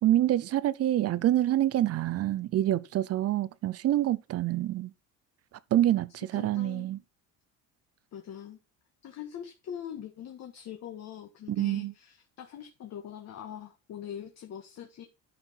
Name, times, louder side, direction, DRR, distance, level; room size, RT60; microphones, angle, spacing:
voice 1, 0.0-4.9 5.7-7.0 11.6-11.9, right 13 dB, 45° right, 0.7 m, -26 dB
voice 2, 6.1-6.9 8.1-8.6 9.0-15.0, left 9 dB, 50° left, 1.8 m, -43 dB
12.0 x 5.9 x 4.5 m
cardioid pair, 155°, 34 cm